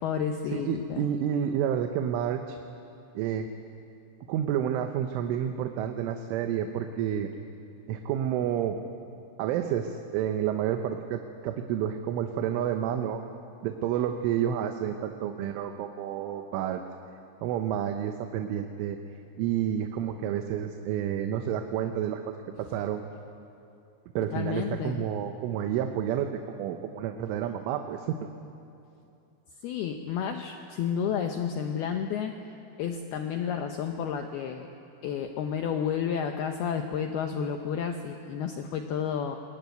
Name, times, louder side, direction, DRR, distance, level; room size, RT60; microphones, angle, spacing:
voice 1, 0.0-1.0 24.3-25.1 29.6-32.4 32.8-34.7 35.0-39.4, left 7 dB, 80° left, 4 dB, 2.2 m, -31 dB
voice 2, 0.5-2.6 3.2-3.5 4.3-7.3 7.9-8.8 9.4-13.2 13.6-16.8 17.4-19.0 19.4-23.0 24.2-28.2, right 9 dB, 80° right, 6 dB, 3.4 m, -30 dB
23.0 x 21.0 x 9.3 m, 2.7 s
omnidirectional pair, 5.8 m